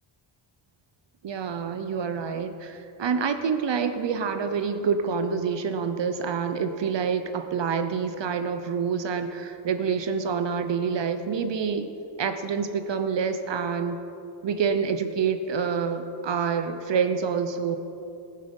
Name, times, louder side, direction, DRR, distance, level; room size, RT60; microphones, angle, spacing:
voice 1, 1.2-11.9 12.2-14.0 14.4-17.8, right 6 dB, 65° right, 9 dB, 0.8 m, -27 dB
19.5 x 7.6 x 5.3 m, 2.7 s
wide cardioid pair, 155°, 46 cm